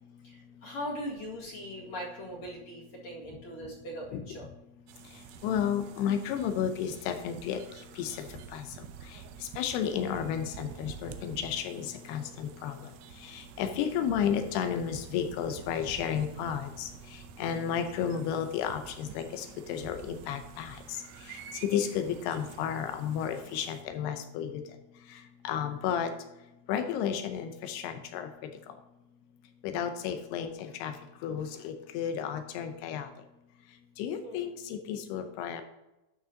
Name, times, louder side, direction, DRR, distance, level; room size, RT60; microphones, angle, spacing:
voice 1, 0.2-4.5 12.1-12.3 34.2-34.5, equal, 50° left, -3 dB, 2.9 m, -40 dB
sound 1, 4.9-23.8, right 9 dB, 85° right, 2.0 m, -49 dB
voice 2, 5.4-7.6 8.0-8.1 8.5-8.6 9.6-12.7 13.3-16.9 17.4-20.8 21.7-24.6 25.4-26.1 26.7-28.3 29.6-30.9 31.2-33.1 34.0-35.6, left 8 dB, 85° left, 7 dB, 2.9 m, -32 dB
12.5 x 6.2 x 2.8 m, 0.96 s
omnidirectional pair, 4.6 m